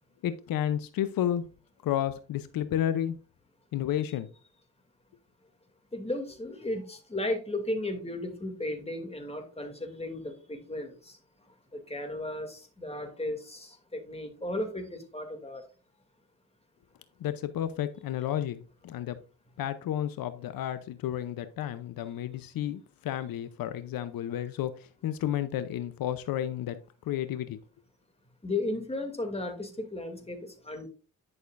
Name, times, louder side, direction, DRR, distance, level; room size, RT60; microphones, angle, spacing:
voice 1, 0.2-1.4 1.8-3.1 3.7-4.3 17.2-19.2 19.6-24.7 25.0-26.8 27.1-27.6, left 11 dB, 90° left, 12 dB, 0.7 m, -31 dB
voice 2, 5.9-15.6 28.4-30.9, left 1 dB, 20° left, 5 dB, 2.5 m, -35 dB
10.5 x 6.6 x 2.5 m, 0.34 s
cardioid pair, 75°, 34 cm